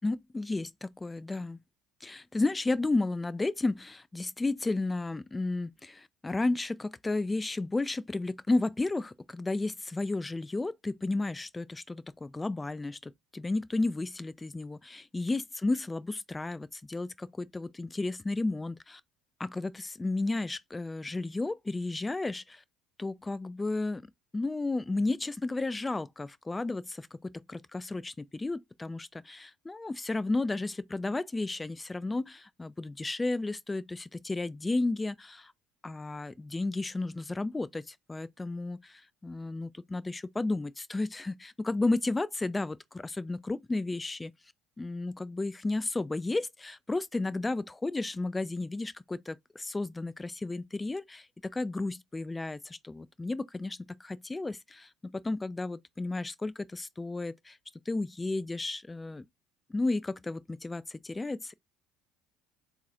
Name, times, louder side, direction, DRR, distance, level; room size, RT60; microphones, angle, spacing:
voice 1, 0.0-1.6 2.0-19.0 19.4-22.6 23.0-24.0 24.3-27.2 27.5-35.5 35.8-44.3 44.8-51.3 51.5-57.6 57.9-59.2 59.7-61.5, left 2 dB, 15° left, 0.3 m, -33 dB
3.8 x 2.4 x 4.2 m
hypercardioid pair, 60°, 0 cm